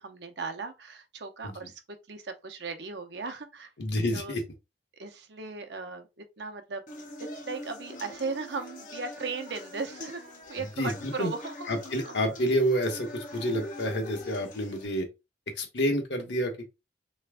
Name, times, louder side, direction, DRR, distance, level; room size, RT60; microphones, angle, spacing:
voice 1, 0.0-1.8 2.1-3.7 4.1-4.4 4.9-6.9 7.2-11.7, right 4 dB, 70° right, 0.7 m, -37 dB
voice 2, 3.8-4.4 10.6-11.3 11.7-15.1 15.6-16.6, equal, 85° left, 1.2 m, -29 dB
sound 1, 6.9-14.9, left 1 dB, 50° left, 1.0 m, -43 dB
3.4 x 3.1 x 3.5 m
head